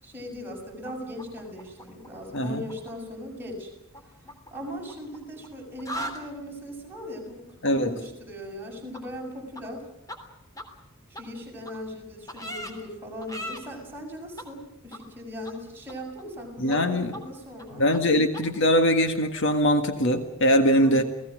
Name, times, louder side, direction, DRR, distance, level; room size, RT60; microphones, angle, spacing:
voice 1, 0.0-3.7 4.5-9.8 11.2-17.8 20.8-21.1, equal, 10° right, -1 dB, 6.9 m, -39 dB
sound 1, 0.9-2.4 2.6-2.9 3.9-5.5 5.7-6.2 8.9-9.0 9.6-9.7 10.1-10.2 10.6-10.7 11.1-11.2 11.7-11.8 12.3-12.7 13.2-13.6 14.4-14.5 14.9-15.0 15.4-15.5 15.9-16.4 16.7-16.8 17.1-17.2 17.6-17.7 17.9-18.0 18.3-18.4, equal, 15° left, 3.3 m, -37 dB
voice 2, 2.3-2.6 7.6-8.0 16.6-17.1 17.7-21.0, equal, 55° left, 7 dB, 1.8 m, -22 dB
29.5 x 18.5 x 6.3 m, 0.89 s
head